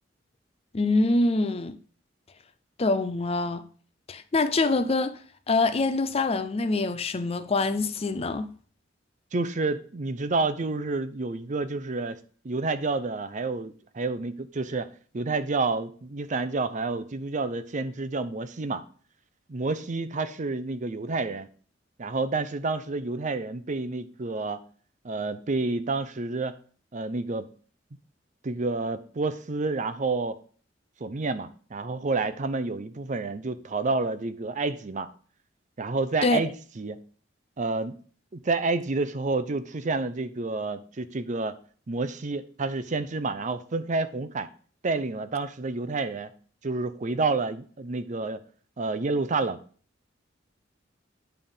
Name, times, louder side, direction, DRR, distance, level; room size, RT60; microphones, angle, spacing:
voice 1, 0.7-1.8 2.8-3.6 4.1-5.2 5.5-8.5 36.2-36.4, left 3 dB, 30° left, 0.5 m, -25 dB
voice 2, 9.3-12.2 12.4-18.8 19.5-21.5 22.0-24.6 25.0-26.5 26.9-27.5 28.4-30.4 31.0-35.1 35.8-36.5 36.8-37.0 37.6-38.0 38.3-41.6 41.9-44.5 44.8-46.3 46.6-48.4 48.8-49.6, right 3 dB, 40° right, 0.6 m, -29 dB
9.3 x 3.5 x 5.5 m
head